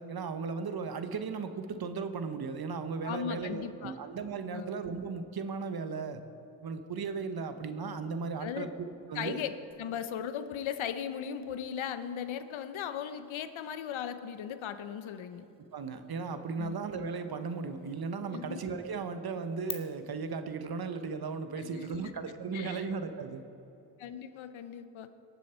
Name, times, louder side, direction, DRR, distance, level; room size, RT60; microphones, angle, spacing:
voice 1, 0.0-6.2 6.6-8.7 9.1-9.4 15.7-23.4, right 5 dB, 50° right, 9 dB, 1.0 m, -36 dB
voice 2, 3.0-3.9 4.5-4.6 8.4-8.7 9.1-15.4 16.6-16.8 18.3-18.7 21.6-22.0 22.5-22.9 24.0-25.1, left 8 dB, 70° left, 11 dB, 0.8 m, -38 dB
sound 1, 9.7-19.7, left 2 dB, 10° left, 1.4 m, -53 dB
18.5 x 7.3 x 4.5 m, 2.8 s
cardioid pair, 65°, 49 cm